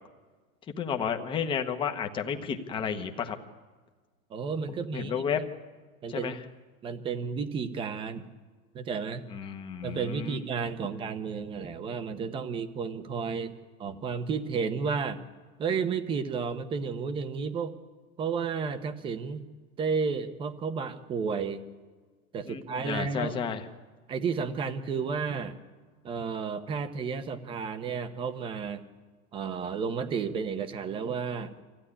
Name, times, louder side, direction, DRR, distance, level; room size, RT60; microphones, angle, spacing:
voice 1, 0.8-3.4 4.7-5.4 6.1-6.4 9.3-10.4 22.5-23.7, left 7 dB, 10° left, 5 dB, 1.1 m, -32 dB
voice 2, 4.3-5.3 6.0-6.3 6.8-8.2 8.7-9.2 9.8-13.5 13.8-15.2 15.6-17.7 18.2-19.4 19.8-21.6 22.3-23.4 24.1-25.5 26.0-28.8 29.3-31.5, right 5 dB, 15° right, 9 dB, 0.9 m, -32 dB
25.5 x 15.5 x 9.9 m, 1.4 s
supercardioid pair, 170°, 41 cm